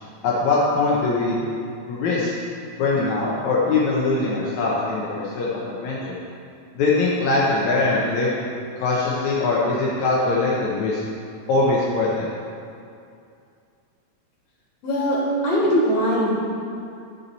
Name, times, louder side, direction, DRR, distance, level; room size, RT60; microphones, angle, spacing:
voice 1, 0.2-1.4 1.9-2.3 2.8-6.2 6.7-8.3 8.8-11.0 11.5-12.3, left 3 dB, 75° left, -5 dB, 2.3 m, -22 dB
voice 2, 14.8-16.3, equal, 55° left, -7 dB, 3.7 m, -21 dB
12.0 x 7.2 x 4.1 m, 2.4 s
omnidirectional pair, 3.4 m